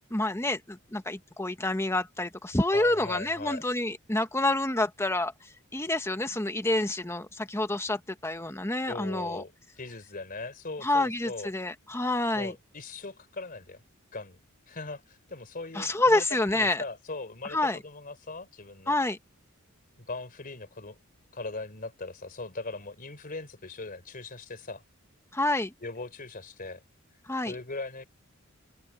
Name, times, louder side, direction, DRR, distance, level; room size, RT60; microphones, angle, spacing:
voice 1, 0.1-9.4 10.8-12.5 15.7-16.8 17.5-17.8 18.9-19.2 25.3-25.7 27.3-27.5, left 2 dB, 10° left, 1.3 m, -28 dB
voice 2, 2.7-3.6 8.9-9.5 9.8-11.5 12.3-13.8 14.1-14.4 14.7-19.0 20.0-21.0 21.3-24.8 25.8-26.8 27.5-28.0, left 3 dB, 40° left, 3.9 m, -39 dB
open air
head